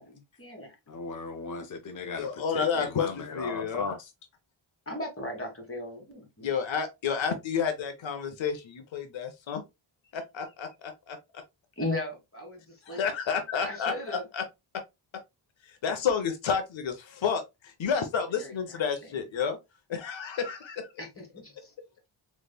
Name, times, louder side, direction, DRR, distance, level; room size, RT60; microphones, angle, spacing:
voice 1, 0.0-0.8 4.8-6.5 11.8-13.1 13.6-14.3 18.3-19.1 21.0-21.5, left 1 dB, 30° left, 1.5 m, -37 dB
voice 2, 0.9-4.1, left 3 dB, 45° left, 0.4 m, -37 dB
voice 3, 2.2-3.9 6.4-9.6 10.1-11.2 12.9-14.4 15.7-19.6 19.9-20.9, left 6 dB, 70° left, 0.7 m, -30 dB
3.4 x 3.1 x 2.2 m
cardioid pair, 55°, 47 cm